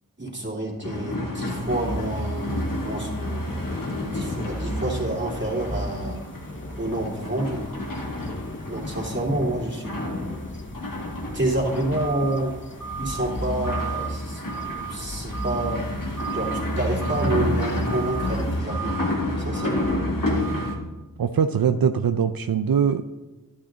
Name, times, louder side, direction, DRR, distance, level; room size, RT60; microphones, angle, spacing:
voice 1, 0.2-3.5 4.0-6.2 6.8-7.6 8.7-10.0 11.1-12.6 13.0-15.9 16.3-19.0 19.4-19.9, right 1 dB, 30° right, -2 dB, 3.0 m, -28 dB
sound 1, 0.8-20.8, equal, 70° left, 2.4 m, -29 dB
sound 2, 1.5-18.6, left 1 dB, 35° left, 1.0 m, -40 dB
voice 2, 21.2-23.1, right 7 dB, 80° right, 9 dB, 0.5 m, -22 dB
11.5 x 11.5 x 3.9 m, 1.1 s
wide cardioid pair, 50°, 35 cm